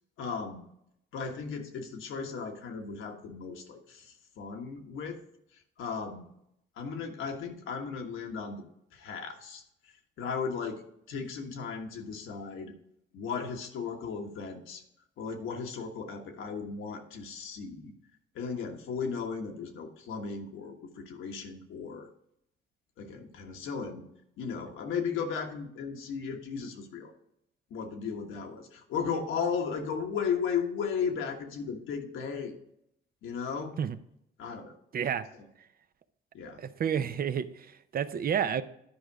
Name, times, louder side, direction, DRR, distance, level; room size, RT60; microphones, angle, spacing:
voice 1, 0.2-0.6 1.1-5.2 5.8-6.3 6.8-8.6 8.9-9.6 10.2-10.8 11.1-12.7 13.1-14.8 15.2-17.9 18.3-22.1 23.0-24.0 24.4-27.1 27.7-32.5 33.2-33.8 34.4-34.7 35.3-35.5 36.3-36.6, left 6 dB, 85° left, 3 dB, 1.4 m, -35 dB
voice 2, 34.9-35.3 36.6-38.6, right 8 dB, 50° right, 12 dB, 0.6 m, -30 dB
10.5 x 5.1 x 4.6 m, 0.77 s
cardioid pair, 90°, 20 cm